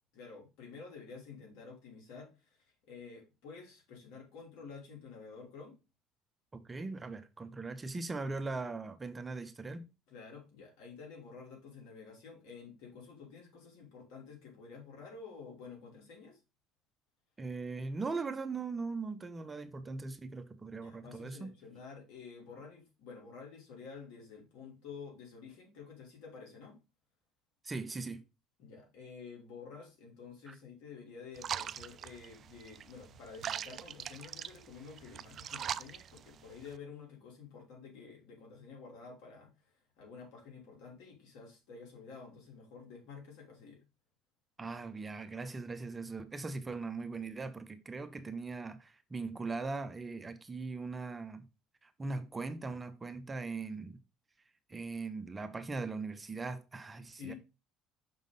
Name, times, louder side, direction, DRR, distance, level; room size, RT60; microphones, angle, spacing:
voice 1, 0.1-5.7 10.1-16.4 20.7-26.8 28.6-39.5 40.0-43.8 57.1-57.4, left 5 dB, 70° left, 3.1 m, -50 dB
voice 2, 6.5-9.9 17.4-21.5 27.6-28.2 30.5-30.6 44.6-51.4 51.8-54.0 54.7-57.3, right 3 dB, 25° right, 0.9 m, -40 dB
sound 1, 31.4-36.8, right 9 dB, 50° right, 0.4 m, -42 dB
6.2 x 3.7 x 5.3 m
supercardioid pair, 80°, 0 cm